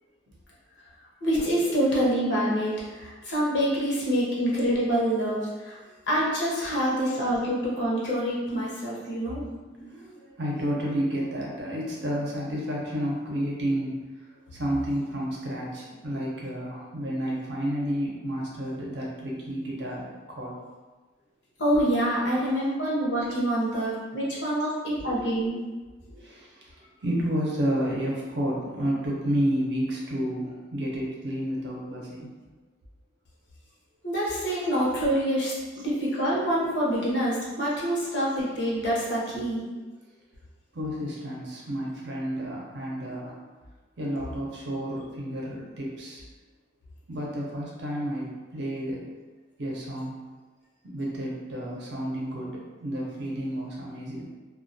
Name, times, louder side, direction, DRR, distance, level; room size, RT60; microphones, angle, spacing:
voice 1, 1.2-5.8 6.1-9.5 21.6-25.5 34.0-39.6, equal, 65° left, -6 dB, 0.7 m, -26 dB
voice 2, 6.5-7.0 9.7-14.2 14.5-20.5 25.0-25.1 26.1-26.7 27.0-32.3 35.7-35.9 40.7-43.4 44.0-46.2 47.1-49.0 49.6-50.2 50.8-52.5 52.8-54.3, equal, 65° right, -4 dB, 0.6 m, -31 dB
2.2 x 2.2 x 2.6 m, 1.3 s
head